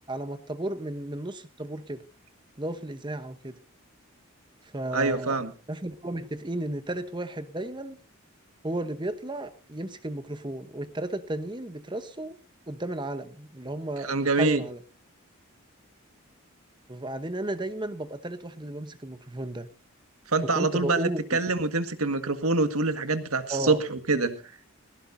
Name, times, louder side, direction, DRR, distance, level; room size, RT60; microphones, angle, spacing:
voice 1, 0.1-2.0 2.6-3.6 4.6-5.4 5.7-8.0 8.6-12.4 12.7-14.8 16.9-19.7 20.5-21.4 23.5-23.8, right 1 dB, 20° right, 11 dB, 0.9 m, -34 dB
voice 2, 4.9-5.5 14.0-14.6 20.3-24.4, right 3 dB, 85° right, 9 dB, 1.7 m, -25 dB
19.0 x 17.0 x 2.7 m, 0.34 s
head